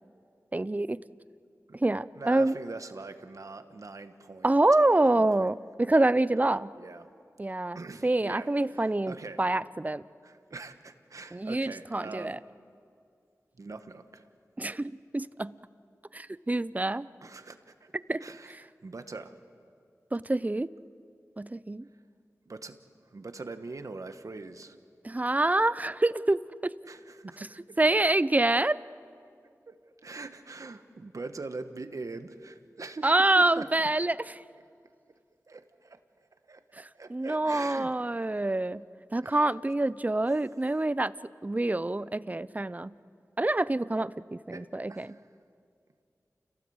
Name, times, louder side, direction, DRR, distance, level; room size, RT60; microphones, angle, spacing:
voice 1, 0.5-1.0 1.8-2.6 4.4-6.7 7.4-10.0 11.3-12.4 14.6-15.6 16.1-17.1 18.1-18.6 20.1-20.7 21.4-21.9 25.0-26.7 27.8-28.8 33.0-34.2 36.8-36.9 37.1-38.8 39.1-41.1 41.4-42.9 43.4-45.1, right 2 dB, 25° right, 17 dB, 0.6 m, -26 dB
voice 2, 2.1-4.5 5.1-5.5 6.8-7.1 7.7-9.4 10.2-12.4 13.6-14.2 17.2-17.9 18.2-19.3 22.5-22.8 23.1-24.8 26.9-27.8 29.7-29.8 30.0-33.7 35.5-36.0 36.5-37.9 38.3-38.5 39.2-39.5 44.5-45.2, right 3 dB, 65° right, 9 dB, 1.4 m, -43 dB
29.5 x 17.0 x 8.1 m, 2.3 s
cardioid pair, 50°, 6 cm